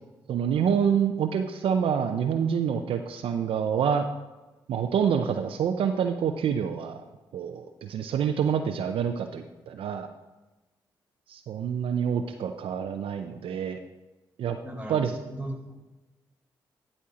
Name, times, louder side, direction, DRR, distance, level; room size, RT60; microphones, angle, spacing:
voice 1, 0.3-4.1 4.7-7.0 7.3-10.1 11.3-13.8 14.4-14.6 14.9-15.1, right 7 dB, 75° right, 6 dB, 0.6 m, -27 dB
voice 2, 14.6-15.7, right 1 dB, 15° right, 1 dB, 2.8 m, -37 dB
11.5 x 4.3 x 4.9 m, 1.1 s
supercardioid pair, 50°, 9 cm